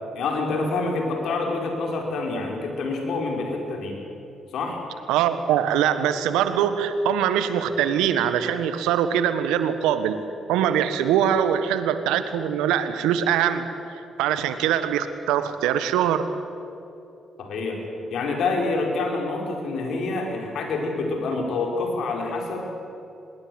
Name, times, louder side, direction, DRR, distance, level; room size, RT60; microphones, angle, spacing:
voice 1, 0.1-4.0 4.5-4.8 17.4-17.8 18.1-22.7, left 3 dB, 70° left, 1 dB, 5.1 m, -27 dB
voice 2, 5.1-10.2 10.5-13.7 14.2-16.3, right 9 dB, 80° right, 11 dB, 1.4 m, -22 dB
24.5 x 21.0 x 8.0 m, 2.8 s
hypercardioid pair, 50°, 0 cm